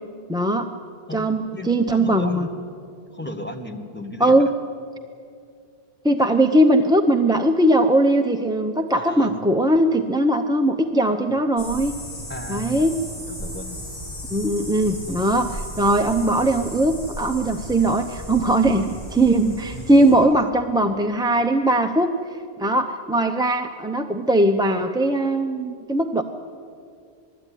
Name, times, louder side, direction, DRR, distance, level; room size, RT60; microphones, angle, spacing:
voice 1, 0.3-0.7 1.1-2.5 4.2-4.5 6.0-11.9 12.5-12.9 14.3-26.2, right 1 dB, 5° right, 4 dB, 0.5 m, -20 dB
voice 2, 1.5-2.5 3.1-4.5 9.0-9.4 12.3-12.9 13.3-13.8 19.7-20.2, left 1 dB, 10° left, 2 dB, 1.5 m, -35 dB
sound 1, 11.6-20.2, equal, 35° left, 5.8 m, -35 dB
20.5 x 14.0 x 9.9 m, 2.3 s
omnidirectional pair, 1.1 m